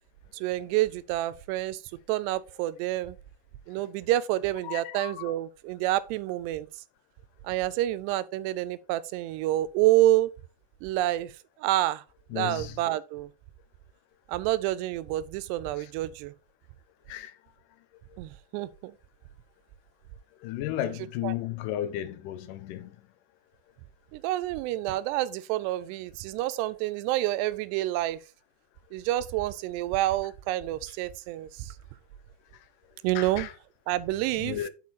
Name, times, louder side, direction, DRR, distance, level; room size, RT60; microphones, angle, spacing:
voice 1, 0.3-1.8 2.1-3.2 3.7-6.7 7.4-10.3 10.8-11.3 11.6-12.0 12.3-13.3 14.3-16.3 18.2-18.9 21.2-21.3 24.1-28.2 28.9-31.7 33.0-33.5 33.9-34.6, right 15 dB, 85° right, 2.7 m, -28 dB
voice 2, 4.6-5.1 12.3-12.7 17.1-17.3 20.4-22.9 33.2-33.5 34.4-34.7, left 12 dB, 75° left, 2.0 m, -33 dB
9.7 x 4.5 x 4.1 m
omnidirectional pair, 4.8 m